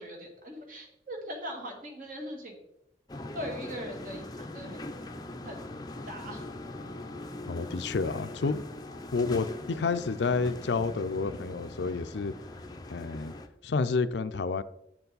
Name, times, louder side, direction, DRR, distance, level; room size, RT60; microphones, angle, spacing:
voice 1, 0.0-2.6 3.3-4.8 5.4-5.7 6.1-6.4, equal, 50° right, 1.9 m, -40 dB
sound 1, 3.1-13.5, left 2 dB, 20° left, 0.6 m, -41 dB
voice 2, 7.5-8.7 9.1-12.3 12.9-13.3 13.6-14.6, left 4 dB, 80° left, 0.5 m, -29 dB
7.5 x 6.9 x 4.0 m
head